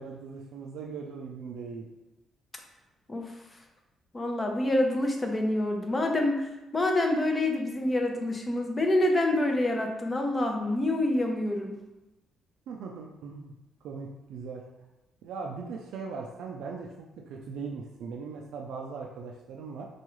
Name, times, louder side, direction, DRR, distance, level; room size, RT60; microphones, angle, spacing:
voice 1, 0.0-1.9 12.7-13.5 13.8-14.6 15.2-16.9 17.3-19.9, right 5 dB, 80° right, 0 dB, 0.4 m, -39 dB
voice 2, 4.1-11.8, left 1 dB, 25° left, 3 dB, 0.6 m, -27 dB
4.6 x 2.3 x 3.0 m, 0.98 s
cardioid pair, 90°, 0 cm